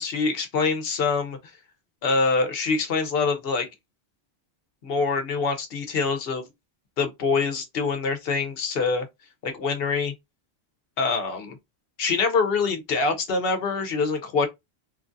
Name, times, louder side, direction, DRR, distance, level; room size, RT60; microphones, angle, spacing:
voice 1, 0.0-1.4 2.0-3.7 4.8-6.5 7.0-9.1 9.4-10.1 11.0-11.6 12.0-14.5, left 4 dB, 65° left, 0.9 m, -25 dB
3.1 x 2.4 x 2.5 m
omnidirectional pair, 1.1 m